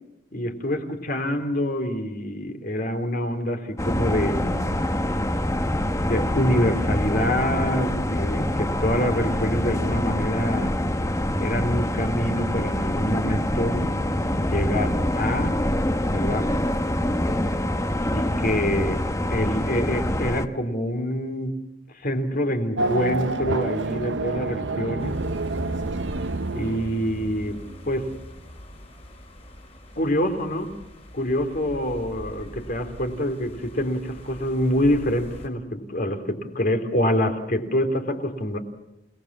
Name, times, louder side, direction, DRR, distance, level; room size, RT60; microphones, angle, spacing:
voice 1, 0.3-4.7 6.0-10.7 11.4-13.9 14.4-15.6 16.1-16.5 18.1-19.0 19.3-21.6 22.0-25.2 26.5-27.6 27.8-28.1 30.0-30.7 31.1-38.6, equal, 50° left, 6 dB, 3.1 m, -26 dB
sound 1, 3.8-20.5, left 1 dB, 15° left, 1.0 m, -25 dB
Race car auto racing / Accelerating revving vroom, 22.8-27.5, right 2 dB, 70° right, 0.8 m, -28 dB
sound 2, 25.0-35.5, equal, 35° left, 4.8 m, -41 dB
29.5 x 19.0 x 7.4 m, 0.89 s
head